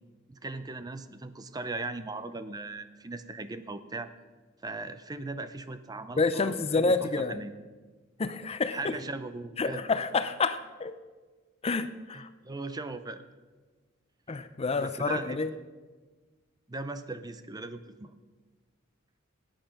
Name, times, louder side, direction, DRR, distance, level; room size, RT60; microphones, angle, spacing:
voice 1, 0.3-4.1 4.6-7.5 8.7-9.8 12.1-13.2 14.8-15.4 16.7-18.1, right 3 dB, 20° right, 11 dB, 0.5 m, -38 dB
voice 2, 6.2-7.4 8.2-9.0 9.6-10.9 11.6-12.3 14.3-15.5, left 4 dB, 30° left, 12 dB, 0.5 m, -28 dB
16.5 x 8.9 x 5.9 m, 1.4 s
head